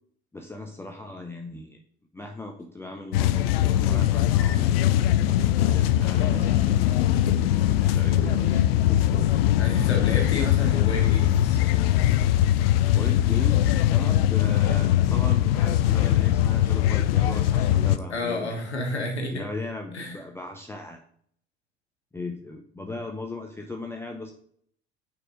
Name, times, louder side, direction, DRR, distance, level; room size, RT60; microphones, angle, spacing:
voice 1, 0.3-1.8 2.1-5.0 5.6-7.2 7.5-9.0 12.8-18.6 19.3-21.0 22.1-24.3, left 2 dB, 5° left, 2 dB, 0.7 m, -38 dB
sound 1, 3.1-18.0, left 12 dB, 65° left, 0.5 m, -21 dB
sound 2, 4.3-11.4, left 3 dB, 40° left, 1.6 m, -38 dB
voice 2, 9.5-11.6 18.1-19.5 19.9-20.2, left 2 dB, 85° left, 2 dB, 1.4 m, -31 dB
6.2 x 4.4 x 3.8 m, 0.62 s
figure-of-eight pair, 65°, 33 cm